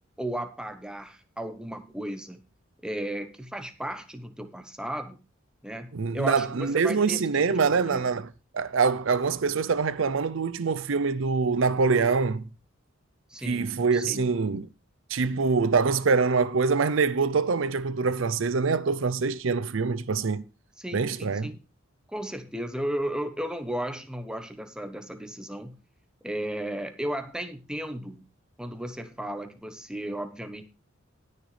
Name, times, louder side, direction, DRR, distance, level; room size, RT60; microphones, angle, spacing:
voice 1, 0.2-2.4 2.8-5.2 5.6-8.2 13.3-14.3 20.8-21.6 22.1-25.8 26.2-28.3 28.6-30.6, right 1 dB, 5° right, 1.0 m, -35 dB
voice 2, 5.9-8.3 8.5-12.5 13.5-14.7 15.1-20.4 20.9-21.5, right 4 dB, 70° right, 0.5 m, -24 dB
19.0 x 6.6 x 3.3 m
head